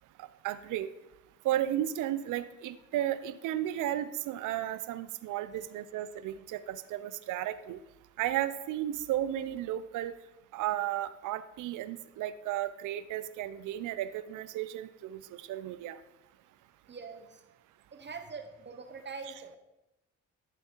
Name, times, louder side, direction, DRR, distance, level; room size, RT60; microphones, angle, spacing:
voice 1, 0.2-0.9 1.4-7.8 8.2-10.1 10.5-16.0, right 12 dB, 85° right, 13 dB, 0.7 m, -34 dB
voice 2, 16.9-17.4 17.9-19.6, right 4 dB, 35° right, 8 dB, 1.0 m, -43 dB
12.0 x 7.0 x 4.6 m, 0.97 s
cardioid pair, 90°, 30 cm